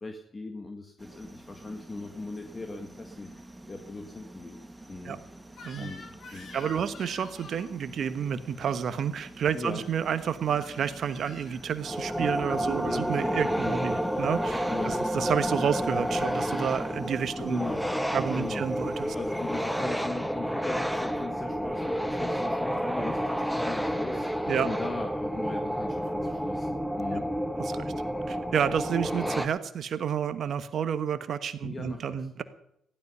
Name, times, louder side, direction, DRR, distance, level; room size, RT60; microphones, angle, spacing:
voice 1, 0.0-3.3 3.7-4.6 4.9-5.2 5.8-6.5 9.5-9.8 12.7-13.8 14.7-15.0 17.5-17.9 18.3-18.7 19.1-27.3 31.6-32.2, left 3 dB, 30° left, 5 dB, 1.9 m, -39 dB
sound 1, 1.0-19.9, right 1 dB, 15° right, 2.1 m, -48 dB
Crying sobbing / Screech, 5.5-7.7 9.6-9.9 10.6-11.6, left 3 dB, 60° left, 3.8 m, -47 dB
voice 2, 6.3-17.6 18.1-19.1 24.5-24.7 27.6-27.9 28.3-32.4, right 8 dB, 60° right, 12 dB, 1.2 m, -30 dB
sound 2, 11.8-29.5, equal, ahead, 1.3 m, -30 dB
15.0 x 12.5 x 5.7 m, 0.76 s
hypercardioid pair, 50°, 0 cm